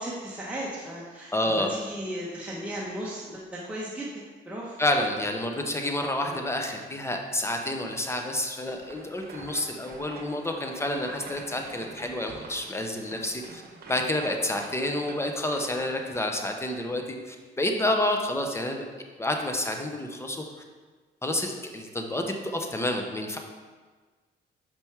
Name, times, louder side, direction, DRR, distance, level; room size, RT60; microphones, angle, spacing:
voice 1, 0.0-4.8 6.2-6.4, right 1 dB, 5° right, -6 dB, 1.2 m, -36 dB
voice 2, 1.3-1.7 4.8-13.6 13.9-18.9 19.2-20.4 21.2-23.4, left 1 dB, 15° left, 3 dB, 0.9 m, -29 dB
sound 1, 8.5-16.1, right 3 dB, 50° right, 1.1 m, -46 dB
5.9 x 5.3 x 4.7 m, 1.4 s
cardioid pair, 90°, 20 cm